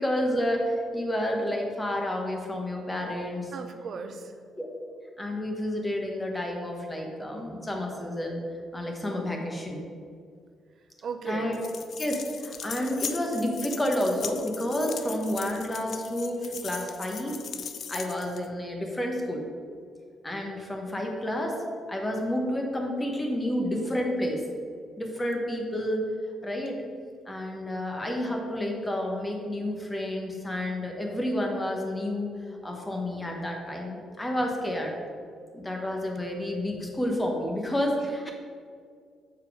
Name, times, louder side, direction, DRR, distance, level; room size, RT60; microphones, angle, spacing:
voice 1, 0.0-3.5 4.6-4.7 5.2-8.4 8.7-9.8 11.2-11.6 12.0-17.4 17.9-19.4 20.2-21.5 21.9-24.4 25.0-26.1 26.4-26.8 27.3-34.9 35.5-38.3, left 1 dB, 15° left, 1 dB, 1.3 m, -30 dB
voice 2, 3.5-4.3 11.0-11.5, right 5 dB, 60° right, 7 dB, 0.7 m, -35 dB
sound 1, 11.5-18.5, left 7 dB, 60° left, 0.4 m, -39 dB
7.0 x 4.5 x 5.0 m, 2.2 s
cardioid pair, 90°, 0 cm